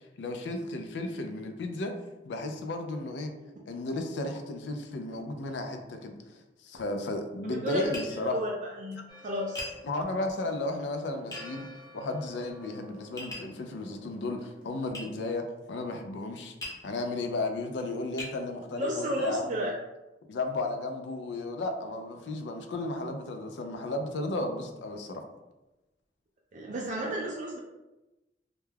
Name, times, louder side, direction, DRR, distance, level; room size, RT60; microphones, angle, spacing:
voice 1, 0.2-1.9 2.2-3.3 3.7-6.2 6.6-8.4 9.8-11.7 11.9-16.5 16.8-19.7 20.3-25.2, left 2 dB, 80° left, 5 dB, 0.4 m, -34 dB
voice 2, 7.4-7.9 8.2-8.5 8.8-9.7 18.8-19.7 26.5-27.6, equal, 45° right, -2 dB, 0.3 m, -32 dB
Tap, 7.9-8.1 9.6-9.8 11.3-11.5 13.2-13.5 14.9-15.1 16.6-16.8 17.5-17.6 18.2-18.4, left 2 dB, 20° left, 0.6 m, -38 dB
Church bell, 9.1-14.8, left 2 dB, 50° left, 0.8 m, -52 dB
2.2 x 2.1 x 3.2 m, 1.0 s
head